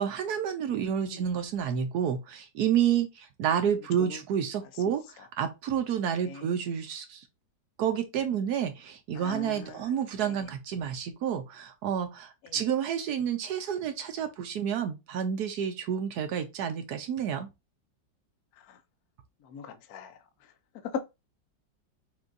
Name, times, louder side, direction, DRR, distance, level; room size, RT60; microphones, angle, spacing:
voice 1, 0.0-7.2 7.8-17.5, right 8 dB, 70° right, 1.1 m, -30 dB
voice 2, 9.1-9.9 10.2-10.3 12.4-12.6 18.7-18.8 19.4-20.2 20.8-21.0, left 6 dB, 65° left, 1.1 m, -39 dB
5.9 x 2.7 x 2.6 m
omnidirectional pair, 2.0 m